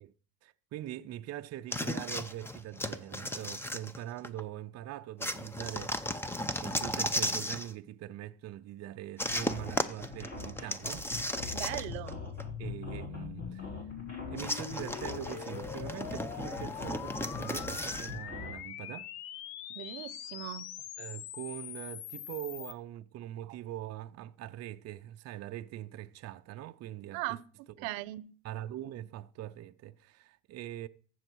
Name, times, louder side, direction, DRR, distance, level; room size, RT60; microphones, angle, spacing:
voice 1, 0.4-11.6 12.6-13.7 14.3-19.1 21.0-27.4 27.8-27.9 28.4-30.9, right 13 dB, 40° right, 0.6 m, -43 dB
sound 1, 1.7-4.4 5.2-7.7 9.2-12.1 12.4-12.5 14.4-18.1, left 1 dB, 5° left, 0.7 m, -35 dB
sound 2, 9.2-18.5, left 3 dB, 40° left, 4.2 m, -43 dB
sound 3, 11.4-22.7, left 12 dB, 70° left, 0.8 m, -43 dB
voice 2, 11.5-12.2 19.7-20.7 27.1-27.4 27.8-28.3, right 17 dB, 80° right, 0.8 m, -38 dB
14.5 x 6.3 x 4.6 m
supercardioid pair, 105°, 39 cm